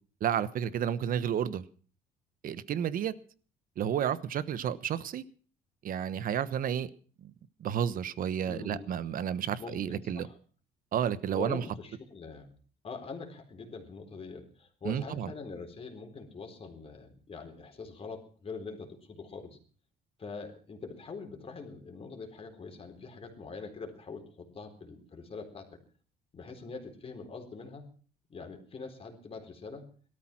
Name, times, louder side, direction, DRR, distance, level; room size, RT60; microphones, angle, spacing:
voice 1, 0.2-1.6 2.4-3.1 3.8-5.2 5.8-6.9 7.2-7.3 7.6-10.3 10.9-11.6 14.8-15.3, right 9 dB, 55° right, 16 dB, 1.1 m, -31 dB
voice 2, 8.4-8.9 9.6-10.4 11.3-12.5 12.8-19.6 20.2-25.8 26.3-27.9 28.3-29.9, left 4 dB, 35° left, 4 dB, 4.0 m, -43 dB
18.0 x 13.0 x 5.9 m, 0.42 s
cardioid pair, 110°, 17 cm